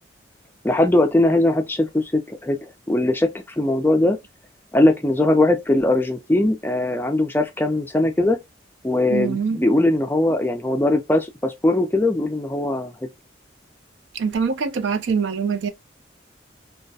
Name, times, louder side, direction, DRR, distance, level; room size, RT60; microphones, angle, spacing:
voice 1, 0.6-2.6 2.9-4.2 4.7-8.4 8.8-12.9, left 1 dB, 10° left, 0.3 m, -20 dB
voice 2, 9.1-9.6 14.1-15.7, right 5 dB, 80° right, 0.4 m, -23 dB
2.3 x 2.1 x 2.6 m
head